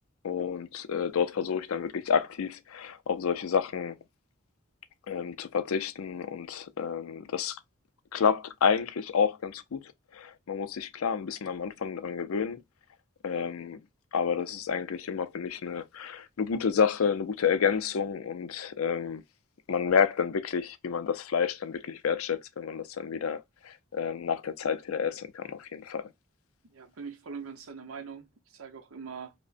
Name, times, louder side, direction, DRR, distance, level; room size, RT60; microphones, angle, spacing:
voice 1, 0.2-4.0 5.1-7.6 8.1-12.6 13.2-13.8 14.1-19.2 19.7-26.1, left 6 dB, 85° left, 0.5 m, -29 dB
voice 2, 26.6-29.3, right 5 dB, 85° right, 0.8 m, -42 dB
4.9 x 2.1 x 2.4 m
head